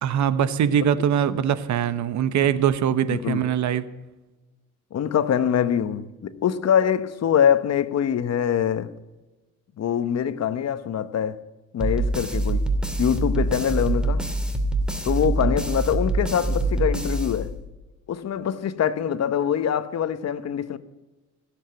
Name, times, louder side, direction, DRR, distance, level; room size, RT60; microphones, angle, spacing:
voice 1, 0.0-3.8, right 9 dB, 70° right, 1.1 m, -22 dB
voice 2, 3.1-3.5 4.9-8.9 9.8-11.4 11.7-12.7 13.0-14.2 15.0-17.5 18.1-20.8, left 8 dB, 55° left, 1.1 m, -24 dB
sound 1, 11.8-17.9, right 2 dB, 5° right, 2.6 m, -25 dB
16.0 x 8.2 x 9.1 m
cardioid pair, 90°, 30 cm